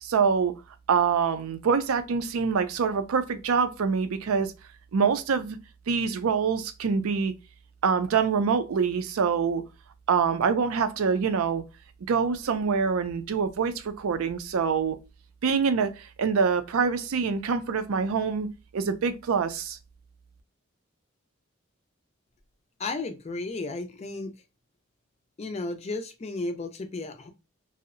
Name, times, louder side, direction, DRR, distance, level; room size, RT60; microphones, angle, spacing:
voice 1, 0.0-0.5 0.9-4.5 4.9-5.6 5.9-7.3 7.8-9.6 10.1-11.6 12.1-15.0 15.4-18.5 18.7-19.8, right 6 dB, 80° right, 0.4 m, -25 dB
voice 2, 22.8-24.3 25.4-27.3, left 3 dB, 30° left, 0.4 m, -33 dB
2.6 x 2.0 x 2.4 m
head